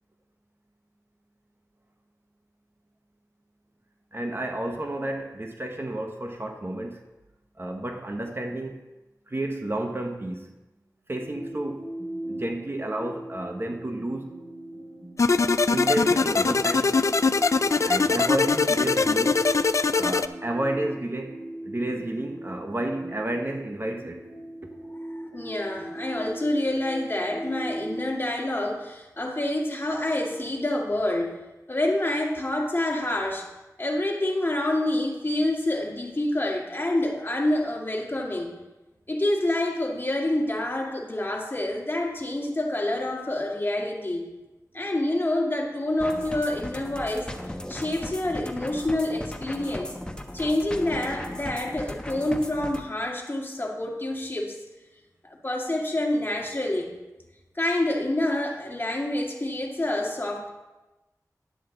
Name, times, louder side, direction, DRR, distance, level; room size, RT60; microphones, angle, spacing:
voice 1, 4.1-7.0 7.6-8.8 9.3-10.5 11.1-11.9 12.3-14.3 15.7-17.0 17.8-19.4 19.9-24.3, right 1 dB, 35° right, 4 dB, 1.0 m, -31 dB
sound 1, 11.1-28.1, right 1 dB, 65° right, 3.3 m, -38 dB
sound 2, 15.2-20.3, left 4 dB, 50° left, 0.3 m, -22 dB
voice 2, 25.1-31.3 31.7-33.5 33.8-38.5 39.1-44.3 44.7-47.3 47.7-50.0 50.3-54.6 55.2-56.9 57.6-60.5, left 1 dB, 35° left, 0 dB, 2.0 m, -27 dB
sound 3, 46.0-52.8, left 1 dB, 15° left, 1.0 m, -37 dB
10.5 x 8.4 x 3.9 m, 1.1 s
wide cardioid pair, 50°, 6 cm